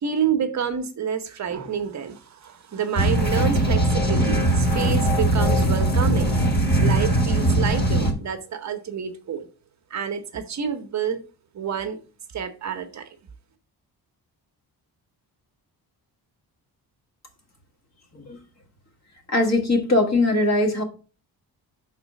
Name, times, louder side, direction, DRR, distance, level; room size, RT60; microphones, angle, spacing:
voice 1, 0.0-6.5 6.8-9.5 9.9-11.2 11.5-12.0 12.3-13.1, right 7 dB, 45° right, 0.8 m, -28 dB
sound 1, 3.0-8.1, right 1 dB, 25° left, 1.5 m, -20 dB
voice 2, 19.3-20.8, left 2 dB, 40° left, 1.5 m, -20 dB
6.0 x 4.0 x 6.3 m
wide cardioid pair, 170°, 39 cm